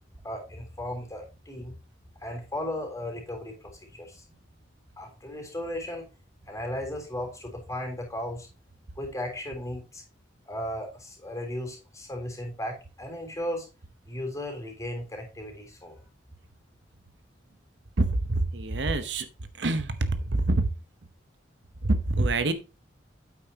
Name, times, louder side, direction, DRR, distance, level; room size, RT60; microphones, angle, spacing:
voice 1, 0.2-1.7 2.2-4.2 5.0-6.1 6.5-8.5 9.0-10.0 10.5-13.7 14.1-16.0, left 1 dB, 15° left, 2 dB, 3.4 m, -36 dB
voice 2, 18.5-19.2 19.6-19.9 20.5-20.7 21.8-22.5, right 2 dB, 70° right, 11 dB, 1.0 m, -25 dB
9.3 x 8.5 x 2.9 m, 0.30 s
head